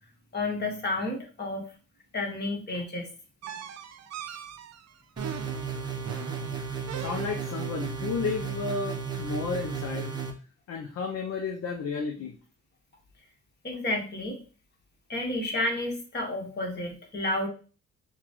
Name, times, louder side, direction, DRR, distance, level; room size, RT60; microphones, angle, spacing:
voice 1, 0.3-1.6 2.1-3.1 13.6-14.4 15.1-17.5, left 2 dB, 35° left, 1 dB, 1.5 m, -31 dB
sound 1, 3.4-7.7, right 8 dB, 60° right, 0.5 m, -41 dB
sound 2, 5.2-10.3, right 6 dB, 15° right, 0.8 m, -34 dB
voice 2, 7.0-10.1 10.7-12.4, left 5 dB, 55° left, 3 dB, 0.6 m, -32 dB
5.8 x 2.3 x 3.0 m, 0.37 s
cardioid pair, 90°, 30 cm